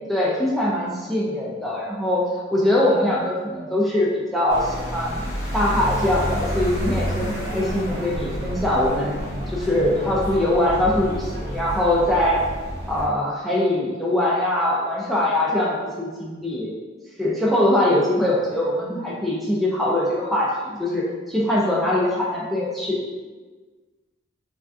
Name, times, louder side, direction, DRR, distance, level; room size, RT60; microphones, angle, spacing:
voice 1, 0.1-2.2 2.5-5.2 5.5-9.2 9.5-12.4 12.9-16.7 17.2-23.0, left 1 dB, ahead, -6 dB, 0.3 m, -22 dB
sound 1, 4.5-13.1, equal, 40° left, 1.1 m, -29 dB
3.3 x 2.4 x 2.3 m, 1.4 s
head